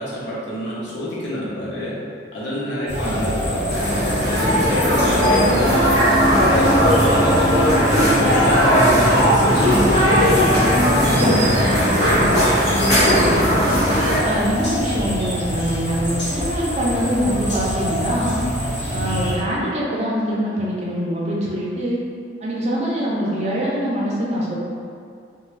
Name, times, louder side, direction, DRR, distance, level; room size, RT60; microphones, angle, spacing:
voice 1, 0.0-2.0 2.3-3.9 4.1-10.6 11.0-12.2, equal, 80° left, -7 dB, 0.8 m, -28 dB
sound 1, 2.9-19.3, equal, 60° left, 1.0 m, -25 dB
sound 2, 3.7-14.2, equal, 35° left, 0.9 m, -17 dB
sound 3, 5.6-12.0, right 1 dB, 20° left, 0.6 m, -24 dB
voice 2, 11.1-11.4 12.1-12.4 13.6-18.4 18.9-22.0 22.4-24.6, equal, 35° right, -5 dB, 0.5 m, -24 dB
2.6 x 2.2 x 3.1 m, 2.3 s
head